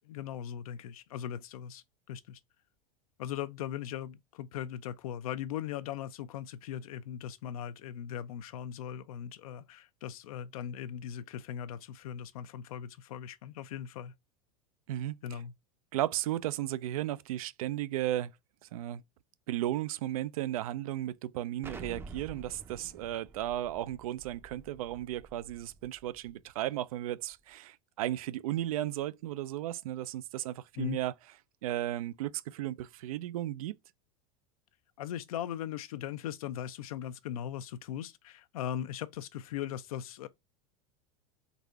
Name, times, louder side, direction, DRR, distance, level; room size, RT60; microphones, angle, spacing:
voice 1, 0.0-2.4 3.2-14.1 15.2-15.5 30.8-31.0 35.0-40.3, left 10 dB, 80° left, 0.6 m, -39 dB
voice 2, 14.9-15.2 15.9-18.3 18.7-19.0 19.5-31.1 31.6-33.7, right 13 dB, 85° right, 0.4 m, -35 dB
Explosion, 21.6-26.3, right 4 dB, 15° right, 0.5 m, -49 dB
4.0 x 2.7 x 4.5 m
supercardioid pair, 115°, 18 cm